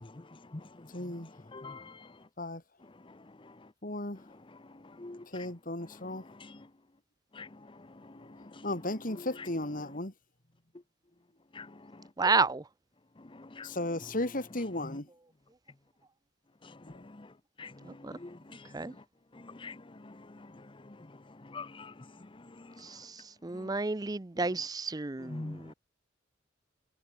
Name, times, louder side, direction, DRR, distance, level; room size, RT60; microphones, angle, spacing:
voice 1, 0.0-2.1 3.4-3.5 5.0-5.5 5.9-6.7 7.3-8.7 9.2-9.5 11.5-11.7 13.3-13.7 14.8-15.0 16.6-17.3 17.6-19.0 19.3-21.0 21.4-22.1 22.4-22.7 23.5-23.7 24.4-24.6 25.2-25.7, left 3 dB, 25° left, 0.7 m, -47 dB
voice 2, 0.9-1.3 2.4-2.6 3.8-4.2 5.3-6.2 8.6-10.1 13.6-15.1, left 1 dB, 45° left, 3.4 m, -35 dB
voice 3, 23.4-25.3, right 4 dB, 20° right, 0.5 m, -29 dB
head